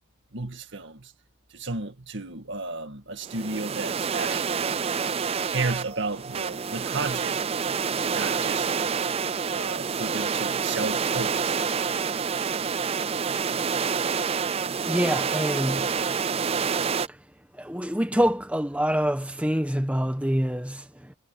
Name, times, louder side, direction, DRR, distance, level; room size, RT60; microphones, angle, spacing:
voice 1, 0.3-1.1 1.5-4.8 5.5-7.4 8.0-8.7 9.5-11.6 12.6-12.7, right 3 dB, 55° right, 2.0 m, -33 dB
sound 1, 3.3-17.1, right 6 dB, 30° right, 0.4 m, -28 dB
voice 2, 14.8-15.9 17.1-17.2 17.5-21.1, equal, 5° right, 1.3 m, -26 dB
head